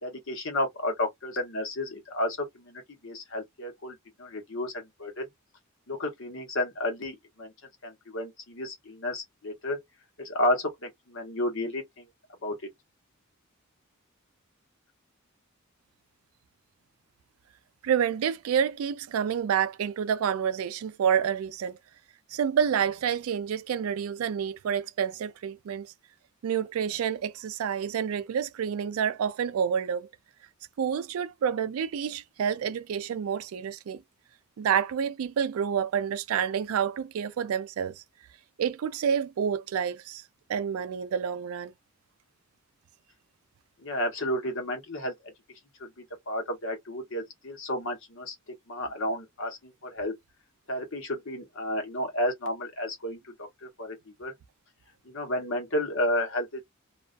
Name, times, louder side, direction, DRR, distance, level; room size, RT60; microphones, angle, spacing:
voice 1, 0.0-5.3 5.9-7.5 7.8-9.8 10.2-10.7 11.1-11.8 12.4-12.6 43.8-45.1 45.8-45.9 46.3-48.3 48.7-50.1 50.7-54.3 55.1-56.6, left 1 dB, 65° left, 1.0 m, -32 dB
voice 2, 17.8-21.8 22.3-25.9 26.4-30.1 30.8-34.0 34.6-38.0 38.6-40.2 40.5-41.7, right 8 dB, 80° right, 0.3 m, -28 dB
2.4 x 2.2 x 2.4 m
head